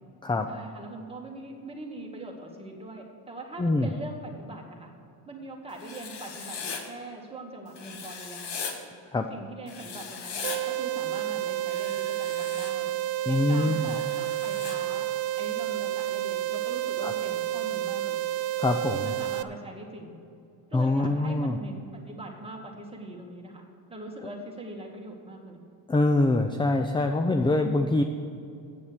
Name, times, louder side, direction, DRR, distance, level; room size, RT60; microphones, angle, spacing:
voice 1, 0.5-4.9 5.3-8.6 9.3-12.9 13.2-15.1 15.4-18.3 18.9-20.2 20.7-23.6 23.9-25.6, right 1 dB, 15° right, -1 dB, 1.9 m, -42 dB
Writing, 5.8-6.8 7.8-8.7 9.7-10.6 11.7-12.7 13.7-14.8, left 5 dB, 65° left, 1.5 m, -38 dB
sound 1, 10.4-19.4, right 13 dB, 85° right, 0.5 m, -30 dB
voice 2, 13.3-13.9 17.0-17.1 18.6-19.1 20.7-21.6 25.9-28.0, left 2 dB, 10° left, 6 dB, 0.4 m, -24 dB
8.4 x 7.2 x 7.9 m, 2.5 s
cardioid pair, 105°, 45 cm